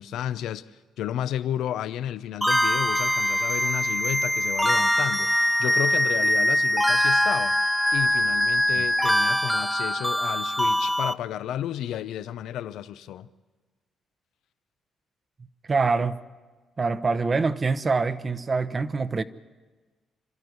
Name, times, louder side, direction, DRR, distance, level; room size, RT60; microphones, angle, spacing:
voice 1, 0.0-7.6 7.9-13.3, left 11 dB, 80° left, 0.7 m, -32 dB
sound 1, 2.4-11.1, left 1 dB, ahead, 0.6 m, -23 dB
voice 2, 15.7-16.2 16.8-19.2, right 4 dB, 35° right, 0.9 m, -25 dB
27.0 x 13.5 x 9.6 m
cardioid pair, 90°, 0 cm